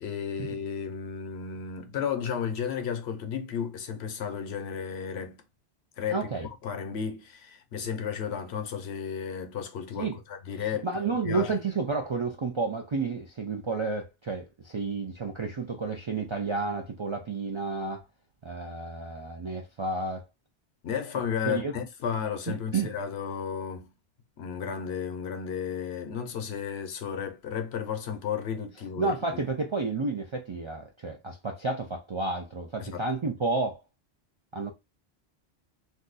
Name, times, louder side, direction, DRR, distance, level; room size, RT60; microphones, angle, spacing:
voice 1, 0.0-5.4 6.0-6.3 6.6-10.9 11.3-11.5 20.8-23.9 24.4-29.4 32.8-33.1, left 7 dB, 75° left, 0.9 m, -33 dB
voice 2, 6.1-6.5 10.0-10.2 10.5-18.0 18.4-20.3 21.5-21.7 22.5-22.9 29.0-33.8 34.5-34.7, right 3 dB, 50° right, 0.3 m, -31 dB
2.7 x 2.2 x 3.8 m
omnidirectional pair, 1.1 m